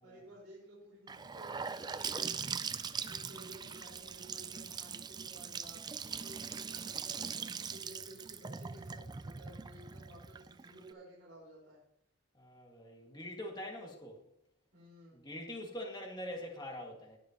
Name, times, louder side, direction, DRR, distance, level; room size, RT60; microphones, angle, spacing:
voice 1, 0.0-2.4 3.0-7.3 7.7-11.8 14.7-15.3, right 1 dB, 60° right, 4.6 m, -55 dB
Gurgling / Sink (filling or washing) / Bathtub (filling or washing), 1.1-10.9, right 6 dB, 20° right, 0.3 m, -41 dB
voice 2, 12.3-14.2 15.1-17.2, left 1 dB, 20° left, 1.9 m, -44 dB
20.0 x 6.7 x 3.0 m
head